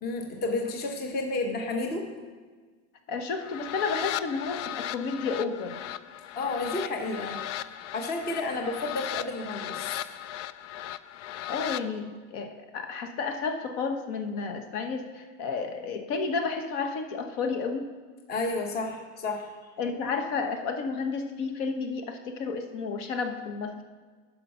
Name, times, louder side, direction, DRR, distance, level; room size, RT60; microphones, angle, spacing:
voice 1, 0.0-2.1 6.4-7.4 7.9-10.0 18.3-19.5, left 2 dB, 25° left, 4 dB, 0.9 m, -31 dB
voice 2, 3.1-5.8 11.5-17.9 19.8-23.8, left 4 dB, 60° left, 6 dB, 1.1 m, -31 dB
sound 1, 3.4-11.8, left 12 dB, 80° left, 0.5 m, -37 dB
9.9 x 5.7 x 5.6 m, 1.5 s
supercardioid pair, 145°, 37 cm